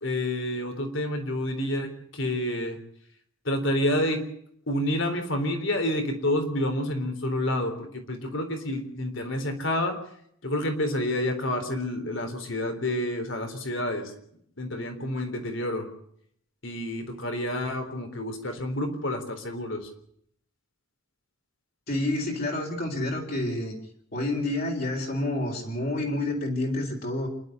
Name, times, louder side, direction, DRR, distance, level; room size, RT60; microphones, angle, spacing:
voice 1, 0.0-2.8 3.5-4.3 4.7-10.0 10.4-14.1 14.6-15.9 16.6-19.9, left 1 dB, 60° left, 6 dB, 3.7 m, -29 dB
voice 2, 21.9-23.8 24.1-27.3, left 1 dB, 45° left, 0 dB, 4.1 m, -29 dB
27.5 x 12.0 x 8.0 m, 0.68 s
head